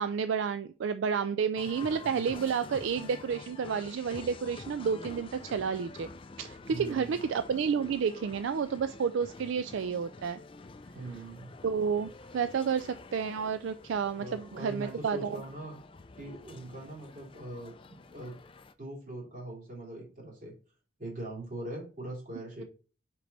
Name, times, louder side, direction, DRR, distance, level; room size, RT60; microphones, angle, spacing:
voice 1, 0.0-6.1 6.4-10.4 11.6-15.4, right 6 dB, 70° right, 11 dB, 0.3 m, -31 dB
sound 1, 1.5-18.7, left 3 dB, 25° left, 0.4 m, -48 dB
voice 2, 6.7-7.2 10.9-11.5 14.2-15.8 16.2-17.7 18.1-18.4 18.8-20.5 21.0-22.6, right 1 dB, 40° right, -3 dB, 2.9 m, -41 dB
5.9 x 4.6 x 4.1 m, 0.37 s
head